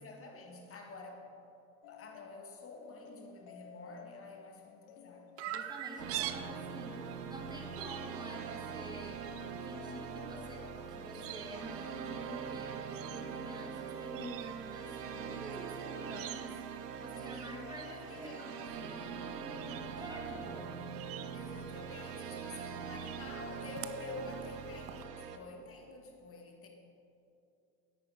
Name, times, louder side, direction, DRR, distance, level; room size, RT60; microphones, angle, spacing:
voice 1, 0.0-1.4 1.9-5.4 17.3-18.5 21.3-26.7, left 3 dB, 30° left, 2 dB, 1.8 m, -49 dB
sound 1, 1.8-8.6 9.2-16.9 17.6-20.7, left 7 dB, 50° left, 0.8 m, -56 dB
Chirp tweet, 5.4-25.0, right 12 dB, 30° right, 0.4 m, -48 dB
voice 2, 5.5-7.0 7.3-9.2 9.6-20.7, right 1 dB, 10° right, 0 dB, 2.1 m, -48 dB
sound 2, 6.0-25.4, right 7 dB, 85° right, 0.8 m, -43 dB
9.6 x 9.2 x 4.9 m, 2.8 s
hypercardioid pair, 80°, 46 cm